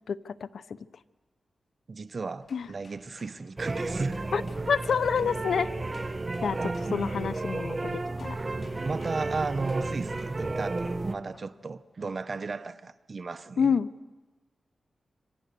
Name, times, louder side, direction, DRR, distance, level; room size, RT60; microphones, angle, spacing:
voice 1, 0.1-0.6 2.5-2.7 4.3-4.4 4.7-5.7 6.4-6.6 6.9-8.4 13.6-13.9, left 6 dB, 80° left, 0.8 m, -27 dB
voice 2, 1.9-4.3 6.6-6.8 8.8-13.7, right 4 dB, 50° right, 1.0 m, -35 dB
sound 1, 2.4-7.7 8.2-10.7 11.3-11.6, left 3 dB, 55° left, 3.7 m, -56 dB
sound 2, 3.6-11.1, right 2 dB, 30° right, 1.4 m, -32 dB
26.5 x 25.0 x 6.9 m
wide cardioid pair, 85°, 0 cm